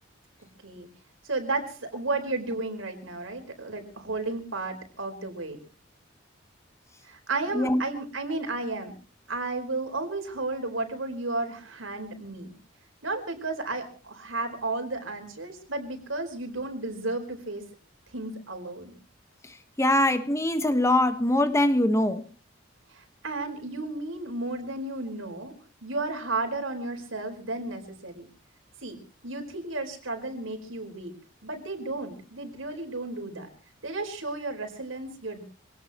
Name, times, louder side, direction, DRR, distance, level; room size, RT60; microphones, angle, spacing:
voice 1, 1.2-5.6 7.1-8.9 9.3-12.5 13.0-17.6 18.1-18.9 22.9-25.5 25.8-28.3 28.8-29.0 29.2-31.1 31.4-33.5 33.8-35.4, right 2 dB, 90° right, 5 dB, 4.8 m, -33 dB
voice 2, 19.4-22.2, left 1 dB, 15° left, 9 dB, 1.4 m, -23 dB
26.0 x 18.0 x 3.1 m, 0.37 s
head